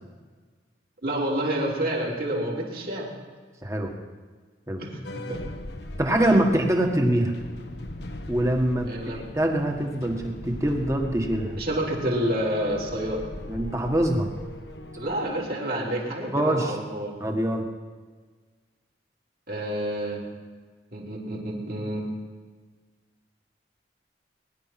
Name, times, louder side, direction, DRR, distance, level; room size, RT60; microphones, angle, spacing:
voice 1, 1.0-3.1 4.8-5.4 6.2-6.3 8.9-9.2 11.6-13.3 15.0-17.1 19.5-20.2 20.9-22.1, right 1 dB, 50° right, -3 dB, 3.6 m, -29 dB
voice 2, 3.6-3.9 4.7-4.8 6.0-7.3 8.3-11.6 13.5-14.3 16.3-16.7 17.2-17.6, right 1 dB, 15° right, 2 dB, 1.7 m, -24 dB
sound 1, 5.0-15.3, left 1 dB, 65° left, 1.2 m, -39 dB
21.0 x 11.0 x 6.0 m, 1.5 s
head